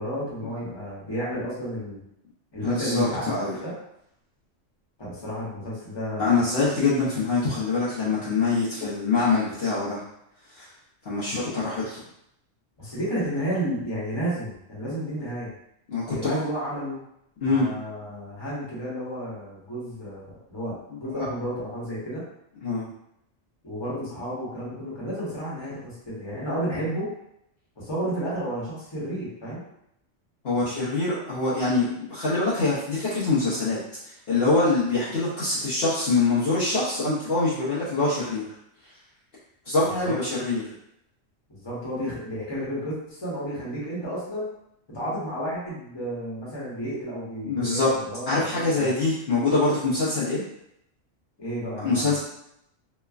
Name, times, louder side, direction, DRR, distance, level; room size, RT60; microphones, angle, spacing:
voice 1, 0.0-2.0 2.5-3.7 5.0-6.4 12.8-15.5 16.1-17.0 17.4-22.2 23.6-27.1 27.8-29.6 40.0-40.1 41.5-44.5 44.9-48.9 51.4-52.2, equal, 20° left, -8 dB, 1.0 m, -32 dB
voice 2, 2.6-3.5 6.2-10.0 10.5-10.6 11.0-12.0 15.9-16.4 17.4-17.7 21.2-21.3 22.6-22.9 30.4-33.8 34.1-38.5 39.7-40.6 47.4-47.9 48.3-50.4 51.8-52.2, left 3 dB, 60° left, -9 dB, 0.9 m, -24 dB
3.0 x 2.2 x 2.3 m, 0.78 s
omnidirectional pair, 1.3 m